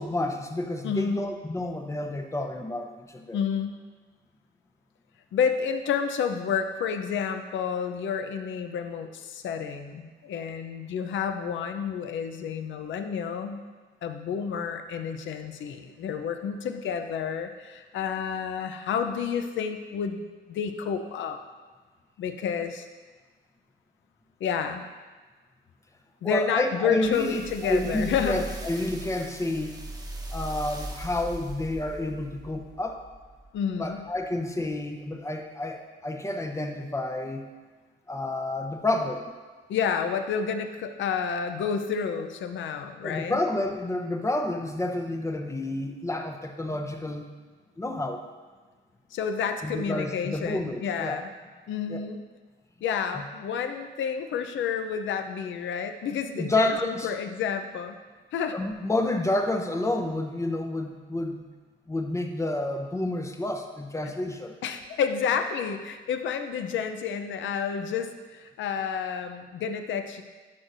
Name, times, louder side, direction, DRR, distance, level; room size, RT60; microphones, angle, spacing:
voice 1, 0.0-3.4 26.2-29.8 30.3-33.0 33.8-37.5 38.1-39.3 43.0-47.3 47.8-48.2 49.6-51.2 51.9-52.0 56.4-57.1 58.5-61.4 61.9-64.6, left 2 dB, 15° left, 4 dB, 0.8 m, -29 dB
voice 2, 0.8-1.2 3.3-3.8 5.3-13.6 14.0-21.4 22.2-22.9 24.4-24.8 26.2-28.5 33.5-34.1 39.7-43.4 49.1-51.3 51.7-52.2 52.8-58.0 58.3-58.6 64.0-64.1 64.6-70.2, left 7 dB, 70° left, 7 dB, 0.7 m, -30 dB
sound 1, 27.1-33.6 34.2-34.3, right 2 dB, 20° right, 1.1 m, -39 dB
12.0 x 6.2 x 2.7 m, 1.4 s
cardioid pair, 90°, 20 cm